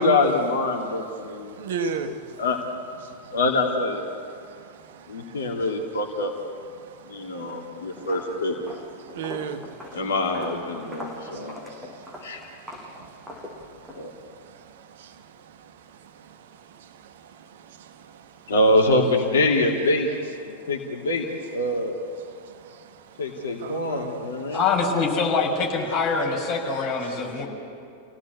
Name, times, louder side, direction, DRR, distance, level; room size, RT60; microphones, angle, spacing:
voice 1, 0.0-1.6 2.4-2.6 3.3-4.0 5.1-6.3 7.1-8.5 9.9-11.5 12.2-12.4 13.9-14.1 18.5-20.1 20.4-21.3 21.5-22.0 23.2-24.6, left 2 dB, 65° left, 2.7 m, -24 dB
voice 2, 0.7-2.5 3.0-3.4 4.1-6.2 6.7-8.2 8.7-10.1 10.8-18.5 20.4-20.7 22.2-24.6 27.0-27.4, right 5 dB, 55° right, 1.3 m, -40 dB
Walk footsteps, 7.3-7.7 8.0-14.0, equal, 10° right, 7.0 m, -41 dB
voice 3, 24.5-27.5, left 4 dB, 35° left, 6.2 m, -24 dB
29.0 x 17.5 x 8.4 m
figure-of-eight pair, 90°, 0 cm